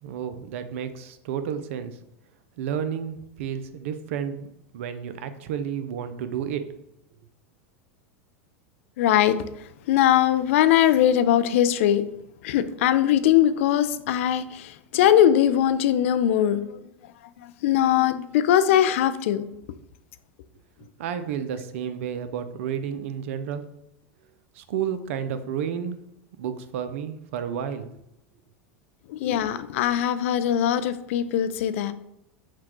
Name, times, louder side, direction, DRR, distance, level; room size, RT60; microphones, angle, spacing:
voice 1, 0.0-2.0 2.6-4.5 4.7-6.7 21.0-23.6 24.5-26.0 26.4-27.9, right 8 dB, 70° right, 11 dB, 0.5 m, -31 dB
voice 2, 9.0-9.4 9.9-12.0 12.4-16.8 17.4-19.4 29.1-31.9, left 11 dB, 70° left, 12 dB, 0.3 m, -21 dB
5.8 x 2.2 x 3.0 m, 0.81 s
hypercardioid pair, 95°, 7 cm